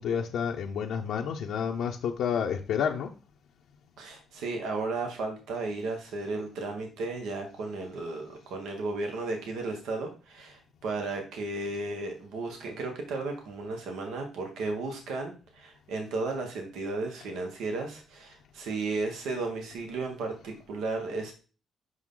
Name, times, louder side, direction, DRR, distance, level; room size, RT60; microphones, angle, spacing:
voice 1, 0.0-3.1, left 7 dB, 80° left, 0 dB, 0.7 m, -30 dB
voice 2, 4.0-21.3, right 3 dB, 85° right, 3 dB, 1.4 m, -34 dB
6.3 x 5.7 x 3.8 m, 0.35 s
cardioid pair, 90°, 0 cm